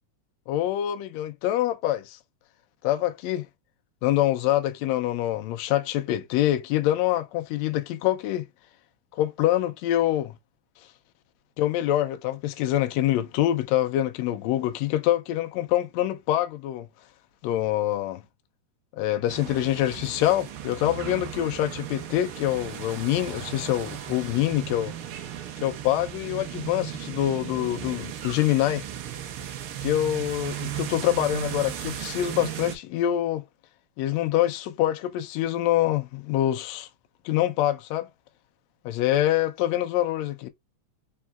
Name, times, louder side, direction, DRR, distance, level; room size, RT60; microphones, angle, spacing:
voice 1, 0.5-2.2 2.8-3.5 4.0-8.4 9.1-10.4 11.6-16.9 17.4-18.2 19.0-24.9 25.6-28.8 29.8-33.4 34.0-36.9 37.3-38.1 38.9-40.5, left 13 dB, 75° left, 1.7 m, -25 dB
sound 1, 19.3-32.8, right 10 dB, 80° right, 1.2 m, -36 dB
4.6 x 3.5 x 2.3 m
omnidirectional pair, 3.4 m